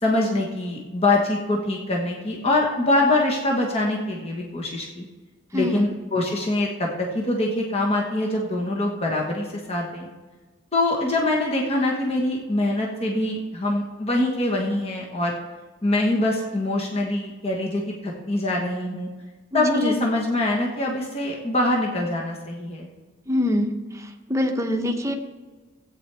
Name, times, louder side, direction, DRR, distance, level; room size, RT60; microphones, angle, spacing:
voice 1, 0.0-5.0 5.5-6.9 7.1-10.1 10.7-15.3 15.8-19.1 19.5-22.9, left 2 dB, 30° left, -1 dB, 1.3 m, -24 dB
voice 2, 5.5-5.8 19.5-19.9 23.3-23.8 24.3-25.1, left 1 dB, 15° right, 4 dB, 0.9 m, -24 dB
15.5 x 8.6 x 3.4 m, 1.3 s
head